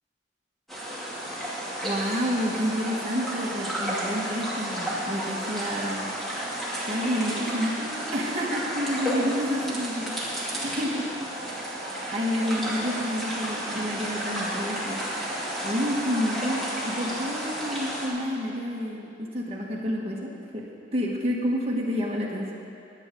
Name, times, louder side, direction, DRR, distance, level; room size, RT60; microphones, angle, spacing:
sound 1, 0.7-18.1, equal, ahead, 2.5 m, -32 dB
voice 1, 1.8-6.1 6.8-11.1 11.4-11.6 12.1-15.0 15.6-22.5, equal, 35° right, -4 dB, 1.6 m, -29 dB
23.5 x 9.0 x 3.8 m, 2.6 s
head